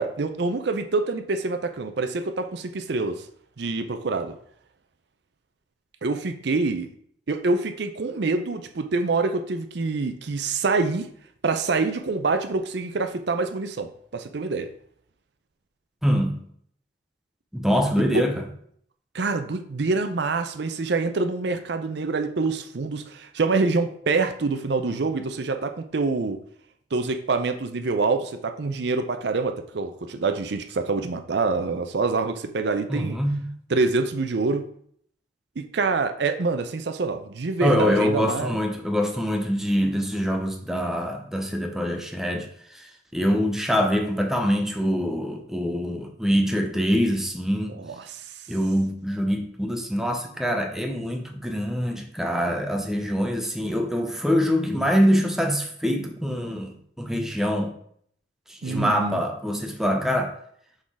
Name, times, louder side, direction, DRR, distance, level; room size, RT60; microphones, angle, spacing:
voice 1, 0.0-3.3 3.6-4.4 6.0-6.9 7.3-11.1 11.4-14.7 18.1-18.3 19.1-26.4 26.9-33.2 33.7-34.7 35.6-38.6 47.8-48.3 58.6-59.2, right 3 dB, 60° right, 8 dB, 0.5 m, -26 dB
voice 2, 16.0-16.4 17.5-18.4 32.9-33.5 37.6-47.8 48.5-57.7 58.5-60.3, equal, ahead, 3 dB, 0.6 m, -24 dB
6.4 x 3.8 x 4.7 m, 0.64 s
head